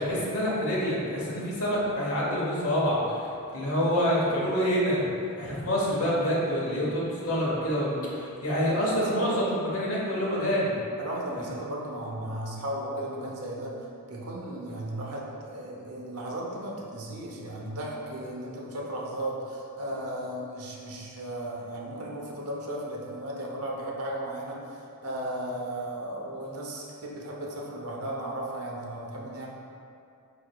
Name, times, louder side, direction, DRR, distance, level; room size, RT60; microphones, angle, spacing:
voice 1, 0.0-5.0 5.4-10.7 11.4-11.5, equal, 70° left, -6 dB, 1.2 m, -27 dB
voice 2, 8.6-9.6 11.0-13.7 14.1-24.6 25.0-29.5, right 1 dB, 90° right, -2 dB, 0.8 m, -35 dB
4.8 x 4.7 x 2.3 m, 2.6 s
head